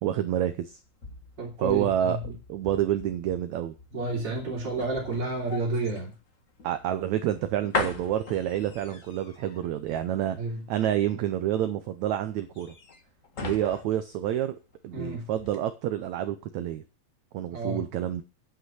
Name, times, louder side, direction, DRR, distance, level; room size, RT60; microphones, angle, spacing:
voice 1, 0.0-0.8 1.6-2.2 2.5-3.7 6.6-10.4 10.7-12.7 13.4-14.6 14.8-16.8 17.3-18.2, right 11 dB, 85° right, 11 dB, 1.6 m, -28 dB
sound 1, 0.6-15.0 15.3-15.6, left 4 dB, 45° left, 1.0 m, -39 dB
voice 2, 1.4-2.2 3.9-6.1 10.4-10.6 14.9-15.3 17.4-17.8, right 3 dB, 40° right, -6 dB, 4.2 m, -30 dB
10.5 x 5.7 x 7.8 m, 0.32 s
omnidirectional pair, 4.1 m